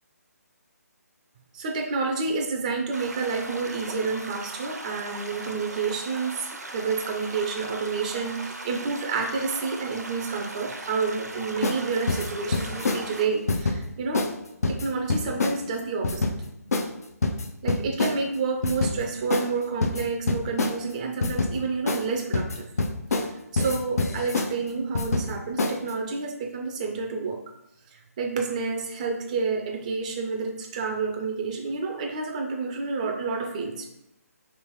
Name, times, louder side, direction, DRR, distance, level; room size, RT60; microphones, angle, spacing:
voice 1, 1.5-6.5 6.7-14.3 14.7-16.2 17.6-22.7 23.1-27.4 27.9-33.9, right 4 dB, 25° right, 2 dB, 0.3 m, -29 dB
sound 1, 2.9-13.3, right 2 dB, 90° right, 0.5 m, -39 dB
sound 2, 11.6-11.8 12.1-13.1 13.5-13.8 14.1-14.3 14.6-15.6 16.0-16.4 16.7-16.9 17.2-18.2 18.6-19.0 19.3-19.5 19.8-20.8 21.2-21.6 21.9-22.1 22.3-23.3 23.6-24.5 24.9-25.3 25.6-25.9, left 3 dB, 70° left, 0.4 m, -25 dB
3.1 x 2.9 x 3.0 m, 0.83 s
figure-of-eight pair, 150°, 9 cm